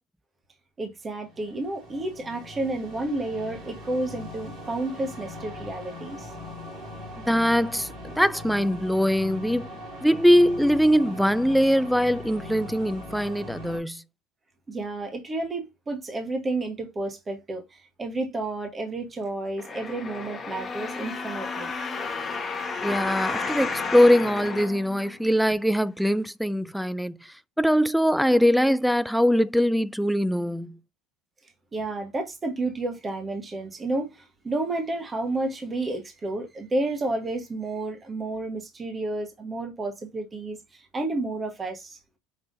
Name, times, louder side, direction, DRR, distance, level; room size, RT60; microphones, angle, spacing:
voice 1, 0.8-6.3 14.7-21.7 31.7-42.0, right 2 dB, 25° right, 1.1 m, -31 dB
sound 1, 1.1-13.8, left 1 dB, 50° right, 2.8 m, -40 dB
voice 2, 7.3-9.7 10.0-14.0 22.8-30.8, equal, ahead, 0.3 m, -22 dB
sound 2, 19.6-25.5 26.1-26.2, left 4 dB, 25° left, 1.0 m, -32 dB
5.5 x 3.3 x 2.6 m
supercardioid pair, 100°, 0 cm